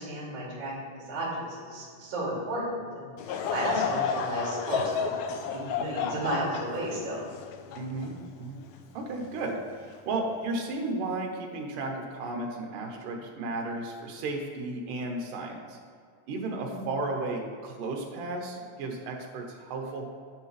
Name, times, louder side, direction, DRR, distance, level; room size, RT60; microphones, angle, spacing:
voice 1, 0.0-5.1 5.4-7.3 16.6-16.8, right 1 dB, 60° right, -6 dB, 3.8 m, -33 dB
Laughter / Crowd, 3.2-8.6 9.2-9.3 10.1-10.4, left 6 dB, 85° left, 1.7 m, -32 dB
voice 2, 7.8-8.6 8.9-15.8 16.3-20.1, right 2 dB, 75° right, 1 dB, 2.7 m, -34 dB
9.9 x 8.6 x 3.3 m, 2.1 s
omnidirectional pair, 3.8 m